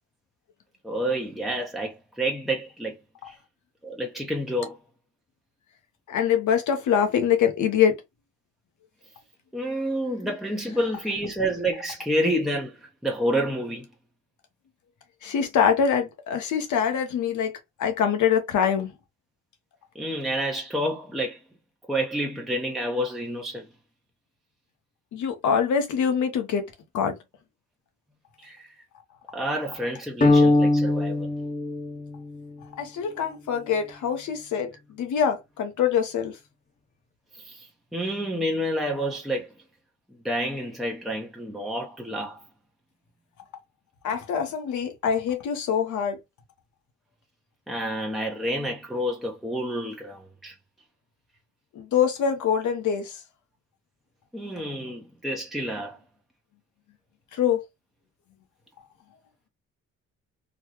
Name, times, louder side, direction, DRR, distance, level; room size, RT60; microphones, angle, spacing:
voice 1, 0.8-2.9 3.3-3.4 3.8-4.8 9.5-13.9 19.9-21.4 21.9-23.7 28.4-28.7 29.3-31.3 37.3-39.5 40.2-42.4 47.7-50.6 54.3-56.0, equal, ahead, 0.8 m, -29 dB
voice 2, 6.1-8.0 15.2-17.5 17.8-18.9 25.1-26.6 26.9-27.1 32.8-34.7 35.0-36.4 44.0-46.2 51.7-53.2 57.4-57.6, left 7 dB, 75° left, 1.1 m, -24 dB
sound 1, 30.2-32.5, left 2 dB, 25° left, 0.9 m, -21 dB
4.0 x 2.2 x 3.1 m
cardioid pair, 90°, 30 cm